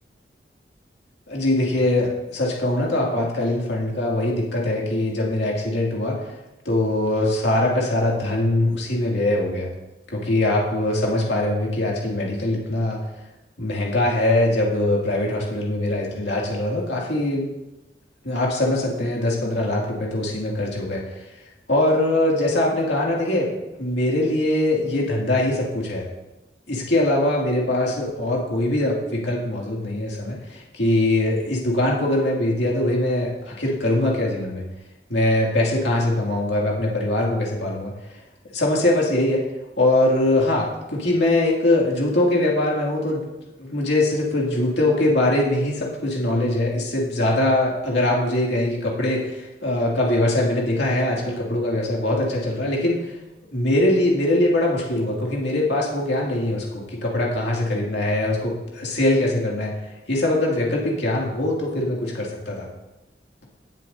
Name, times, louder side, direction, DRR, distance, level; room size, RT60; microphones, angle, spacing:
voice 1, 1.3-6.2 6.6-9.7 10.1-13.0 13.6-17.5 18.2-21.0 21.7-23.5 23.8-26.1 26.7-34.6 35.1-37.9 38.5-39.5 39.8-43.2 43.6-53.1 53.5-59.7 60.1-62.7, left 1 dB, 85° left, -3 dB, 2.4 m, -22 dB
19.0 x 7.9 x 2.7 m, 0.98 s
head